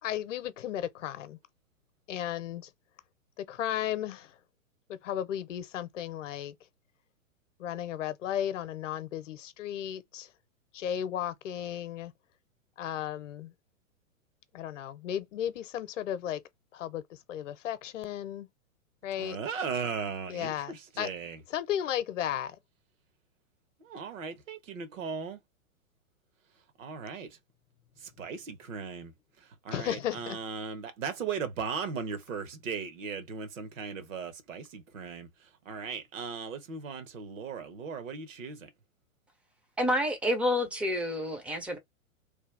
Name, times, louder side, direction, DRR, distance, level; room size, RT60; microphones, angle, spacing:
voice 1, 0.0-1.4 2.1-2.7 3.4-4.4 4.9-6.5 7.6-10.3 10.7-12.1 12.8-13.5 14.5-16.4 16.7-18.5 19.0-19.4 20.3-21.1 21.5-22.6 29.7-30.4, left 10 dB, 60° left, 0.7 m, -34 dB
voice 2, 19.2-21.4 23.8-25.4 26.8-27.4 28.0-29.1 29.6-35.3 35.6-38.7, right 5 dB, 65° right, 1.2 m, -37 dB
voice 3, 39.8-41.8, left 1 dB, 5° right, 0.4 m, -28 dB
3.3 x 2.3 x 3.2 m
hypercardioid pair, 115°, 42 cm